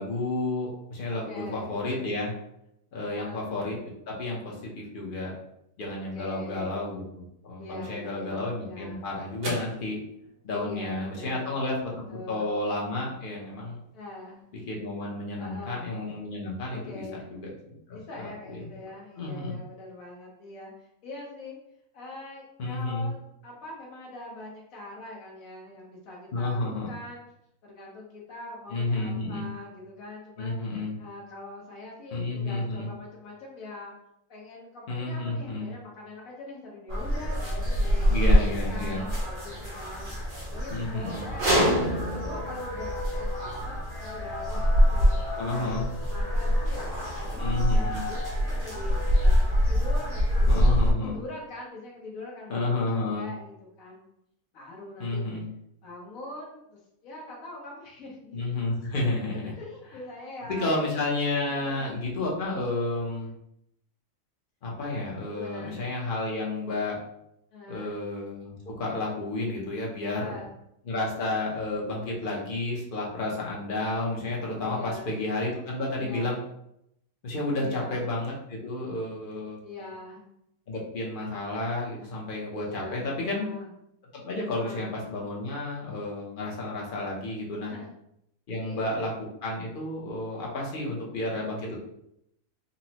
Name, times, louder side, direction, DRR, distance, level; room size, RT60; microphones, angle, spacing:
voice 1, 0.0-2.3 2.9-3.8 4.1-5.3 5.8-10.0 10.4-13.8 14.7-18.6 19.2-19.5 22.6-23.1 26.3-26.9 28.7-29.5 30.4-30.9 32.1-32.9 34.9-35.7 38.1-39.0 40.7-41.3 45.4-45.9 47.4-48.0 50.5-51.2 52.5-53.3 55.0-55.5 58.3-59.5 60.5-63.3 64.6-67.0 67.7-70.4 70.9-76.4 77.2-79.6 80.7-83.5 84.1-87.7 88.5-89.1 89.4-91.8, left 2 dB, 45° left, -3 dB, 0.8 m, -31 dB
voice 2, 1.1-1.8 3.1-3.6 5.9-6.7 7.6-9.0 10.5-11.6 12.1-12.5 13.9-14.4 15.4-15.8 16.7-17.3 17.9-20.7 21.0-21.6 21.9-23.2 23.4-26.6 26.9-27.2 27.6-33.9 34.3-38.4 38.7-45.2 45.5-48.2 48.4-54.0 54.5-55.2 55.8-58.7 59.5-61.0 61.5-61.9 65.2-65.8 67.5-67.9 70.1-70.6 74.7-75.2 76.0-76.4 77.5-78.1 79.6-80.3 82.0-82.1 82.5-83.7 84.6-84.9 87.7-87.9 88.6-89.0, left 2 dB, 80° left, -3 dB, 1.4 m, -43 dB
sound 1, 8.1-16.7, right 1 dB, 65° right, 1.1 m, -47 dB
sound 2, 36.9-50.9, equal, 45° right, 0.8 m, -25 dB
4.0 x 2.1 x 2.8 m, 0.78 s
omnidirectional pair, 1.4 m